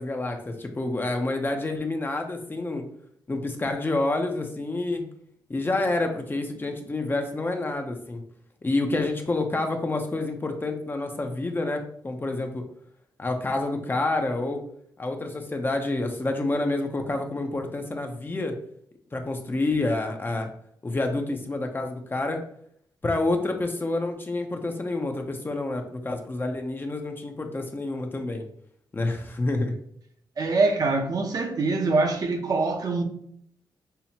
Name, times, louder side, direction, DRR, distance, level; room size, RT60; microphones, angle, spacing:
voice 1, 0.0-2.9 3.3-5.0 5.5-8.2 8.6-12.6 13.2-14.6 15.0-18.6 19.1-20.5 20.8-22.4 23.0-28.5 28.9-29.7, left 2 dB, 25° left, 0.6 m, -28 dB
voice 2, 30.4-33.0, right 3 dB, 50° right, 0.6 m, -24 dB
5.6 x 2.1 x 2.8 m
cardioid pair, 90°, 8 cm